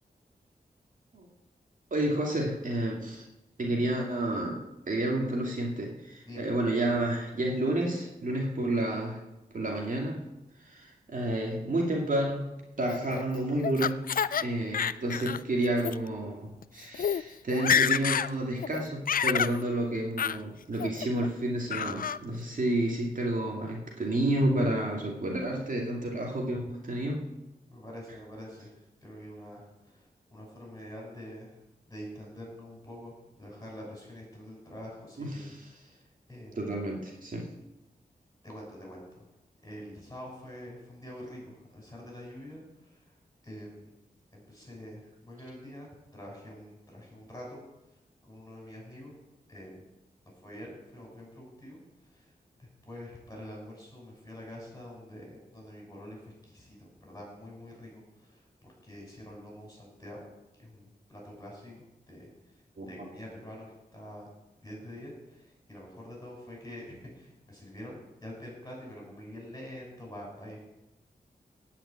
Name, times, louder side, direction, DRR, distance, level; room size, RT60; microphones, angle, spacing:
voice 1, 1.9-3.2 3.6-9.2 9.5-10.2 10.7-12.5 12.8-14.0 14.4-27.3 35.2-35.6 36.5-37.5 62.8-62.9, right 1 dB, 55° right, -1 dB, 2.5 m, -30 dB
Laughter, 12.9-14.4 14.7-15.4 15.8-16.0 16.6-16.7 16.9-17.2 17.5-18.3 18.6-19.6 20.2-20.4 20.8-21.3 21.7-22.2, left 7 dB, 60° left, 0.4 m, -28 dB
voice 2, 27.7-31.6 31.9-36.6 38.4-39.2 39.6-43.1 43.4-43.8 44.3-47.6 48.2-49.1 49.5-49.8 50.4-51.8 52.1-52.3 52.6-58.4 58.8-60.2 60.6-62.3 62.8-64.3 64.6-70.6, equal, 20° left, -2 dB, 6.8 m, -46 dB
17.5 x 5.8 x 8.8 m, 0.93 s
wide cardioid pair, 115°, 16 cm